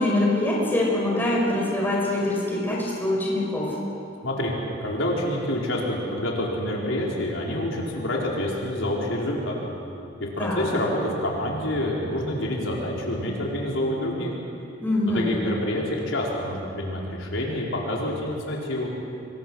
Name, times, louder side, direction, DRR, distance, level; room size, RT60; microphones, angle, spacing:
voice 1, 0.0-3.7 10.4-10.6 14.8-15.3, left 1 dB, 10° left, -3 dB, 5.3 m, -24 dB
voice 2, 4.2-4.5 4.8-9.6 10.2-14.3 15.1-18.9, left 1 dB, 80° left, -3 dB, 4.6 m, -27 dB
26.0 x 23.0 x 6.4 m, 2.6 s
head